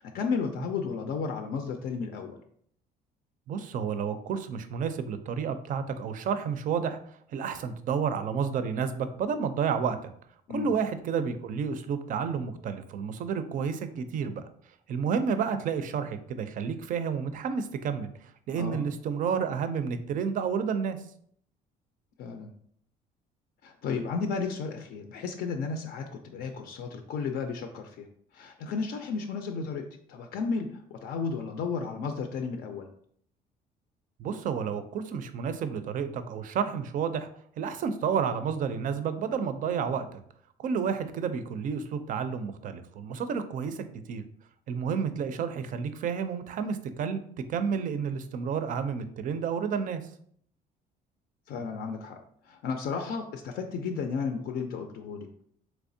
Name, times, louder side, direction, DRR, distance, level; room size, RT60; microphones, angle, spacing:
voice 1, 0.0-2.4 10.5-10.7 18.6-18.9 22.2-22.5 23.6-28.1 28.3-32.9 51.5-52.2 52.4-55.4, left 5 dB, 65° left, 5 dB, 0.4 m, -33 dB
voice 2, 3.5-7.0 7.3-10.1 10.5-14.4 14.9-21.0 34.2-37.3 37.6-40.2 40.6-44.2 44.7-47.2 47.5-50.0, right 6 dB, 50° right, 10 dB, 0.4 m, -30 dB
3.4 x 3.0 x 2.6 m, 0.64 s
cardioid pair, 110°, 17 cm